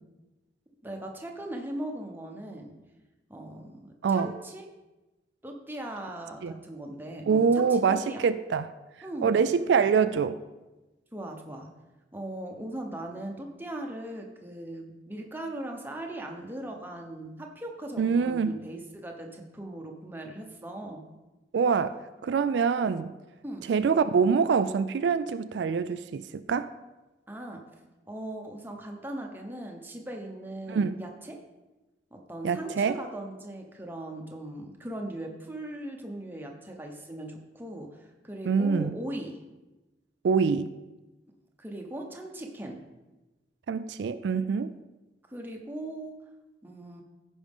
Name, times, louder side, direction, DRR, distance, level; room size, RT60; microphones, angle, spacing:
voice 1, 0.8-2.7 3.3-4.7 5.4-8.2 9.0-9.4 11.1-11.7 12.1-21.0 23.4-23.6 27.3-27.6 28.0-31.4 32.1-39.4 41.6-42.8 45.3-46.1 46.6-47.0, right 1 dB, 10° right, 1 dB, 0.9 m, -39 dB
voice 2, 7.3-8.7 9.2-10.4 18.0-18.6 21.5-23.1 23.7-26.7 30.7-31.0 32.4-33.0 38.4-38.9 40.2-40.7 43.7-44.7, right 5 dB, 75° right, 11 dB, 0.3 m, -25 dB
14.5 x 5.3 x 3.6 m, 1.1 s
head